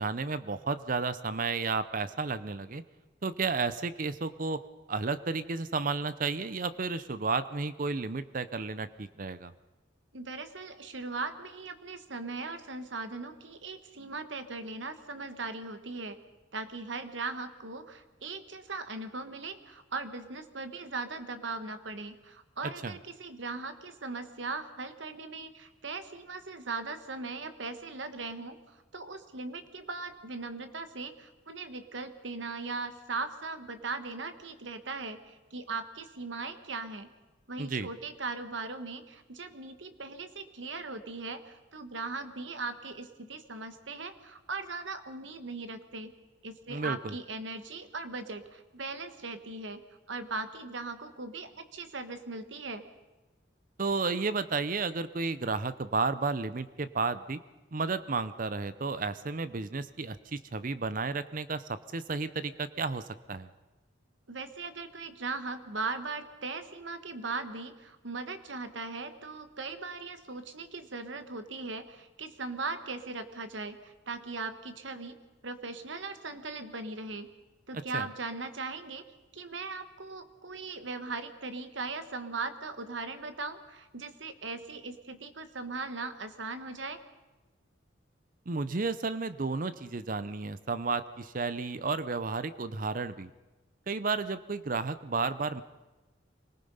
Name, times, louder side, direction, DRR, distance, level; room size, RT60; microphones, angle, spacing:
voice 1, 0.0-2.8 3.2-4.6 4.9-9.5 22.8-22.9 37.6-37.9 46.7-47.1 53.8-57.4 57.7-63.5 77.9-78.1 88.5-93.3 93.9-95.6, right 4 dB, 45° right, 14 dB, 0.6 m, -32 dB
voice 2, 10.1-16.2 16.5-37.1 37.5-46.1 46.4-49.8 50.1-52.8 64.3-75.2 75.4-77.3 77.7-79.0 79.3-87.0, right 3 dB, 75° right, 10 dB, 1.4 m, -39 dB
25.0 x 19.0 x 5.5 m, 1.1 s
head